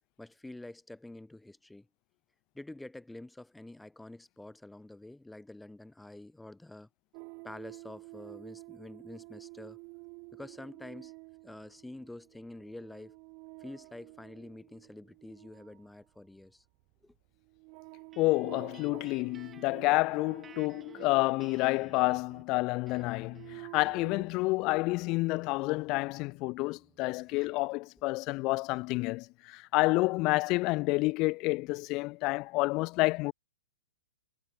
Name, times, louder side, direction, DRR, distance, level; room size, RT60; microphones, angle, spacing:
voice 1, 0.2-1.9 2.5-6.9 7.4-9.8 10.3-11.1 11.4-13.2 13.6-16.6 17.0-17.1, left 2 dB, 5° left, 3.0 m, -47 dB
sound 1, 7.1-22.3 22.9-24.2, right 34 dB, 35° right, 4.2 m, -50 dB
sound 2, 18.1-27.7, right 7 dB, 15° right, 2.3 m, -59 dB
voice 2, 18.2-33.3, left 23 dB, 30° left, 0.7 m, -29 dB
hypercardioid pair, 145°, 0 cm